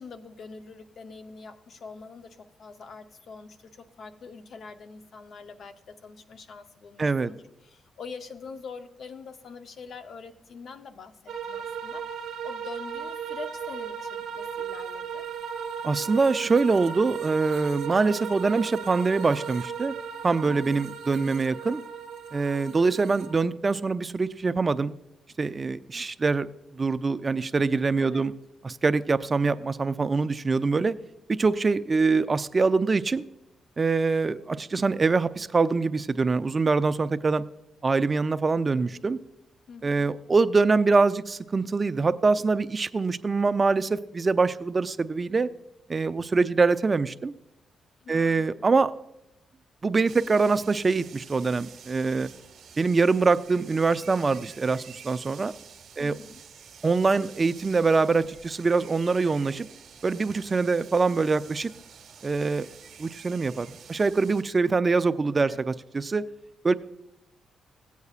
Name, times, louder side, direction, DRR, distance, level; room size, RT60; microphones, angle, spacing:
voice 1, 0.0-11.2 11.5-15.3 20.4-20.9 28.0-28.3 39.7-40.1 48.0-48.9 56.0-56.4 65.4-65.6, left 4 dB, 65° left, 9 dB, 0.7 m, -44 dB
voice 2, 7.0-7.3 15.8-19.9 20.2-21.8 22.3-24.9 25.4-26.5 26.7-28.3 28.6-30.9 31.3-33.2 33.8-37.4 37.8-39.2 39.8-45.5 45.9-47.3 48.1-48.9 49.8-52.3 52.8-55.5 56.0-56.2 56.8-59.7 60.0-61.7 62.2-62.7 63.0-66.3 66.6-66.7, right 4 dB, 35° right, 13 dB, 0.4 m, -24 dB
sound 1, 11.3-23.3, right 7 dB, 85° right, 0.7 m, -36 dB
sound 2, 50.1-64.4, right 7 dB, 65° right, 1.1 m, -49 dB
17.5 x 8.2 x 2.4 m, 0.88 s
cardioid pair, 85°, 0 cm